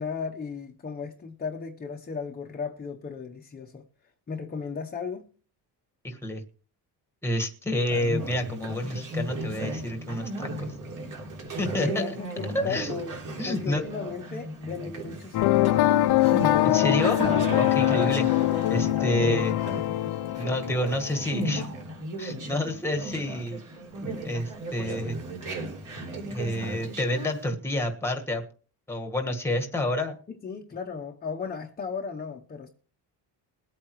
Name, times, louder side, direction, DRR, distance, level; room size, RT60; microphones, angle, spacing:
voice 1, 0.0-3.8 4.3-5.3 11.8-13.1 13.5-16.3 18.0-18.3 30.3-32.7, left 5 dB, 20° left, 0.8 m, -36 dB
voice 2, 6.0-6.4 7.2-10.7 11.6-12.1 12.5-12.9 13.4-13.8 16.6-17.2 17.6-18.3 18.7-19.6 20.4-21.7 22.2-23.6 24.2-25.2 26.3-28.4 28.9-30.2, left 1 dB, 5° left, 1.5 m, -29 dB
Conversation, 7.8-27.5, right 1 dB, 45° right, 3.5 m, -35 dB
sound 1, 15.3-21.6, left 15 dB, 65° left, 0.6 m, -23 dB
22.0 x 8.5 x 3.1 m
cardioid pair, 160°, 42 cm